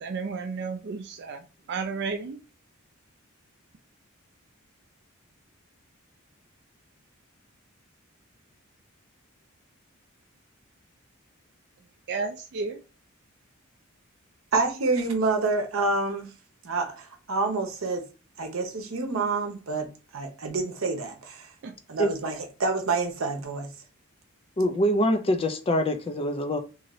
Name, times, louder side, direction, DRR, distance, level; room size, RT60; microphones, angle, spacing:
voice 1, 0.0-2.4 12.1-12.8 21.6-21.7, right 4 dB, 55° right, 0.4 m, -32 dB
voice 2, 14.5-16.3 16.6-18.0 18.4-21.5 21.9-22.3 22.6-23.8, right 3 dB, 70° right, 0.8 m, -28 dB
voice 3, 24.6-26.6, equal, 25° left, 0.4 m, -24 dB
2.7 x 2.6 x 3.0 m
head